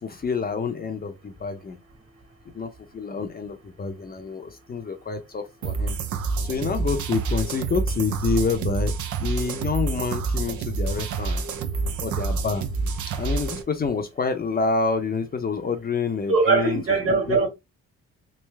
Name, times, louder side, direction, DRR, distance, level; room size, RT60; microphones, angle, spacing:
voice 1, 0.0-1.8 2.5-5.9 6.4-11.4 12.0-12.7 13.2-17.4, left 4 dB, 30° left, 0.6 m, -28 dB
sound 1, 5.6-13.6, right 4 dB, 80° right, 0.7 m, -28 dB
voice 2, 16.3-17.5, right 4 dB, 45° right, 1.8 m, -21 dB
3.3 x 2.6 x 3.4 m
cardioid pair, 90°, 30 cm